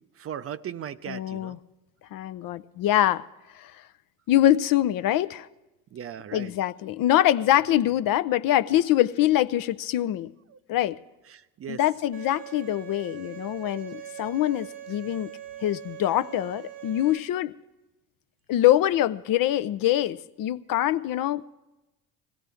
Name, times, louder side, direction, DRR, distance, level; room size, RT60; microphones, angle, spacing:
voice 1, 0.2-1.6 5.9-6.5 11.3-11.8, right 9 dB, 35° right, 0.5 m, -37 dB
voice 2, 1.1-1.6 2.1-3.3 3.5-3.8 4.3-5.5 6.3-10.3 10.7-11.0 11.7-15.3 15.6-17.5 18.5-21.4, left 13 dB, 55° left, 0.6 m, -24 dB
Bowed string instrument, 12.1-17.2, right 11 dB, 75° right, 1.3 m, -42 dB
20.5 x 16.5 x 3.5 m
hypercardioid pair, 65°, 40 cm